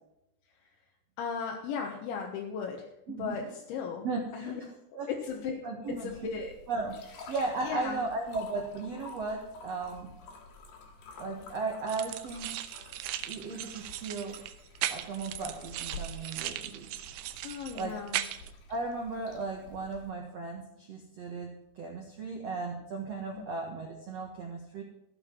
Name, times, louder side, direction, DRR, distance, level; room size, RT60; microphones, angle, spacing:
voice 1, 1.2-2.9 3.2-4.1 4.3-4.6 5.1-5.6 5.9-6.5 7.6-8.0 17.4-18.2 23.3-23.4, left 6 dB, 80° left, 0 dB, 3.6 m, -36 dB
voice 2, 3.1-3.5 4.0-4.6 4.9-5.1 5.6-6.1 6.7-7.0 7.3-10.1 11.2-12.6 13.3-14.4 14.9-16.9 17.7-18.0 18.7-24.8, right 3 dB, 65° right, 1 dB, 1.6 m, -36 dB
sound 1, 5.9-20.1, left 2 dB, 65° left, 4.0 m, -50 dB
sound 2, 11.9-18.5, right 13 dB, 90° right, 3.2 m, -38 dB
14.5 x 9.2 x 6.0 m, 0.86 s
omnidirectional pair, 5.3 m